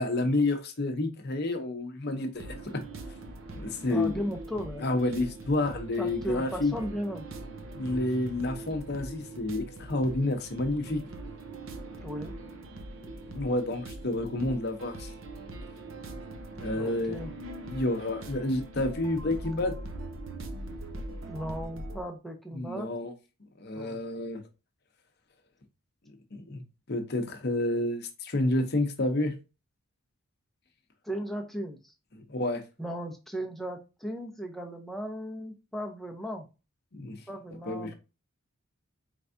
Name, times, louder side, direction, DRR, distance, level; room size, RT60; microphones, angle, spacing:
voice 1, 0.0-2.8 3.6-4.2 4.8-6.7 7.7-11.0 13.0-15.1 16.6-17.2 17.6-19.8 22.5-23.1 23.6-24.4 26.3-26.6 26.9-29.3 32.1-32.6 36.9-37.2 37.7-37.9, left 2 dB, 45° left, 0.7 m, -29 dB
sound 1, 2.3-22.0, right 2 dB, 65° right, 0.7 m, -42 dB
voice 2, 3.9-4.9 6.0-7.3 12.0-12.3 16.7-17.3 21.3-22.9 23.7-24.0 31.0-31.9 32.8-36.5 37.3-37.9, equal, ahead, 0.6 m, -36 dB
4.6 x 3.3 x 2.6 m
head